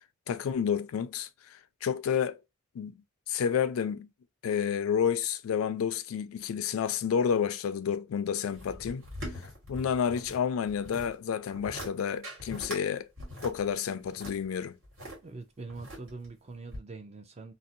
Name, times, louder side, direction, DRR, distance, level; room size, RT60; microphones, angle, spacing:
voice 1, 0.3-2.4 2.7-2.9 3.3-4.1 4.4-9.0 9.7-13.1 13.4-14.8, left 7 dB, 90° left, 0.3 m, -30 dB
sound 1, 8.5-10.4 10.7-11.1 11.5-11.9 12.2-12.8 13.2-15.2 15.7-16.3 16.7-16.8, equal, 75° right, 1.4 m, -42 dB
voice 2, 15.2-17.5, right 3 dB, 30° right, 0.4 m, -43 dB
2.6 x 2.0 x 2.6 m
head